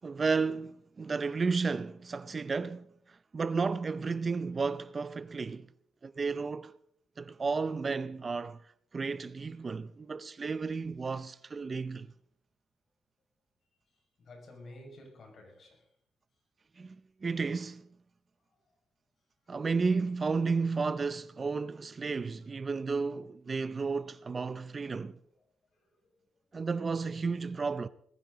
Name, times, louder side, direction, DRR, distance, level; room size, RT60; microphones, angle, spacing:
voice 1, 0.0-5.7 6.0-6.7 7.2-8.6 8.9-12.1 16.8-17.9 19.5-25.2 26.5-27.9, right 4 dB, 35° right, 0.6 m, -33 dB
voice 2, 13.9-15.9 25.7-26.3, left 1 dB, 50° left, 5.9 m, -52 dB
19.0 x 15.0 x 4.0 m
cardioid pair, 105°, 0 cm